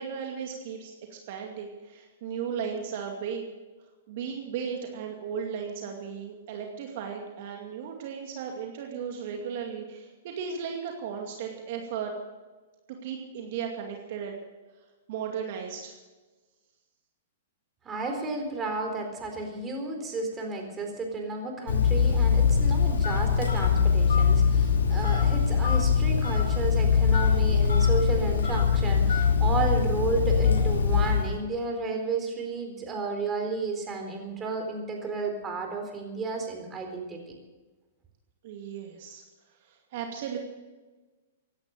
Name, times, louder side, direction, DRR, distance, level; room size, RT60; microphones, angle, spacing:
voice 1, 0.0-3.4 4.1-12.1 13.0-14.4 14.7-14.8 15.1-15.9 38.4-39.2 39.6-40.4, right 7 dB, 55° right, 2 dB, 2.4 m, -36 dB
voice 2, 17.8-37.2, right 3 dB, 20° right, 3 dB, 4.1 m, -32 dB
Telephone, 21.7-31.4, left 6 dB, 80° left, 2.9 m, -22 dB
16.5 x 11.5 x 6.7 m, 1.2 s
hypercardioid pair, 125°, 0 cm